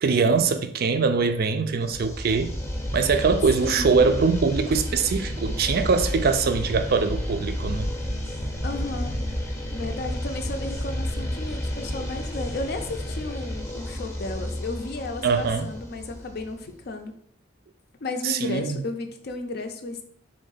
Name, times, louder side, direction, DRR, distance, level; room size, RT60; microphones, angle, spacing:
voice 1, 0.0-2.5 2.9-7.9 15.2-15.7 18.2-18.8, right 5 dB, 50° right, 0.4 m, -22 dB
sound 1, 1.9-16.7, equal, 15° left, 0.6 m, -31 dB
voice 2, 3.6-4.0 8.6-9.1 9.7-17.1 18.0-20.0, left 2 dB, 50° left, 0.4 m, -33 dB
3.6 x 3.2 x 3.9 m
head